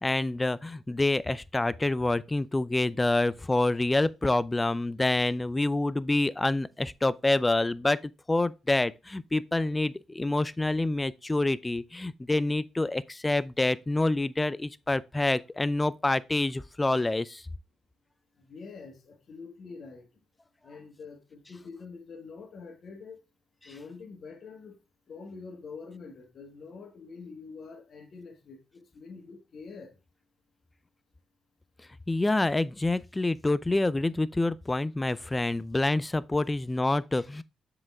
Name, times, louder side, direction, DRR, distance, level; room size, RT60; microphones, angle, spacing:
voice 1, 0.0-8.0 8.3-17.4 32.1-37.4, left 2 dB, 20° left, 0.5 m, -27 dB
voice 2, 18.4-20.1 20.6-23.2 23.6-24.8 25.1-29.9, left 4 dB, 60° left, 1.7 m, -45 dB
7.4 x 5.0 x 3.5 m
hypercardioid pair, 40°, 0 cm